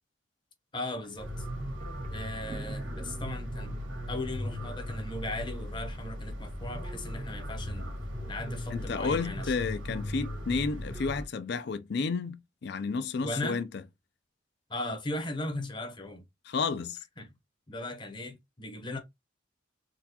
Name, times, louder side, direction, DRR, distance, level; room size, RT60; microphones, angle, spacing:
voice 1, 0.7-1.5 2.1-3.8 4.1-7.9 8.3-9.5 13.2-13.6 14.7-16.2 17.2-17.3 17.7-19.0, left 1 dB, 25° left, 0.8 m, -37 dB
sound 1, 1.0-1.2 1.4-6.4, right 2 dB, 35° right, 0.5 m, -49 dB
sound 2, 1.2-11.2, equal, 85° right, 1.5 m, -37 dB
voice 2, 8.7-13.7 16.5-17.0, left 4 dB, 60° left, 0.4 m, -31 dB
3.8 x 2.3 x 2.8 m
head